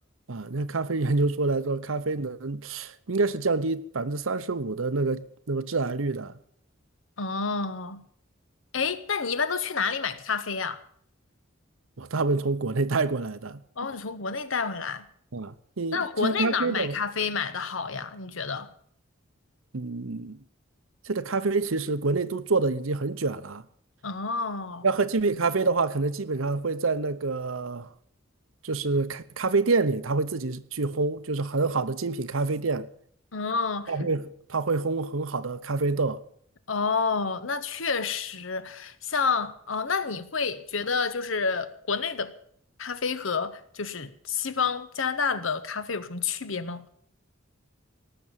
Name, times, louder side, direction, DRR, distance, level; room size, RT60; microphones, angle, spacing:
voice 1, 0.3-6.3 12.0-13.6 15.3-17.0 19.7-20.4 21.0-23.6 24.8-27.9 28.6-32.9 33.9-36.2, right 3 dB, 75° right, 0.9 m, -27 dB
voice 2, 7.2-8.0 8.7-10.8 13.8-15.0 15.9-18.7 24.0-24.9 33.3-34.1 36.7-42.3 42.8-46.8, left 5 dB, 70° left, 1.1 m, -29 dB
18.5 x 7.1 x 9.0 m
head